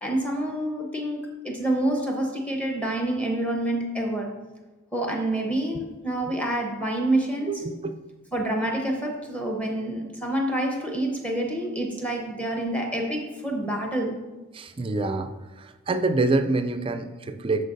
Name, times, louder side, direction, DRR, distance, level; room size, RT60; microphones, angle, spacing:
voice 1, 0.0-4.3 4.9-7.6 8.3-14.2, right 1 dB, 5° left, 0 dB, 0.9 m, -27 dB
voice 2, 7.5-8.0 14.5-15.3 15.6-17.7, right 3 dB, 25° right, 9 dB, 0.4 m, -26 dB
12.5 x 4.6 x 2.6 m, 1.2 s
head